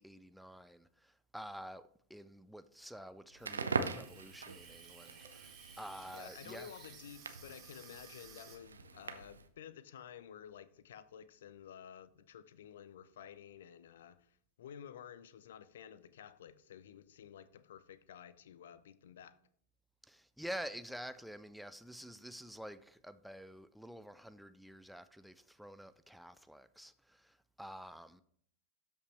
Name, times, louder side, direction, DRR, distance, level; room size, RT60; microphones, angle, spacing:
voice 1, 0.0-6.7 20.0-28.2, equal, ahead, 0.3 m, -49 dB
Crackle, 3.3-9.5, right 4 dB, 75° right, 0.6 m, -42 dB
Water tap faucet / Sink (filling or washing), 3.4-8.6, right 7 dB, 30° right, 1.6 m, -57 dB
voice 2, 6.1-19.4, left 9 dB, 60° left, 0.5 m, -52 dB
12.5 x 5.3 x 3.1 m
figure-of-eight pair, 90°, 0 cm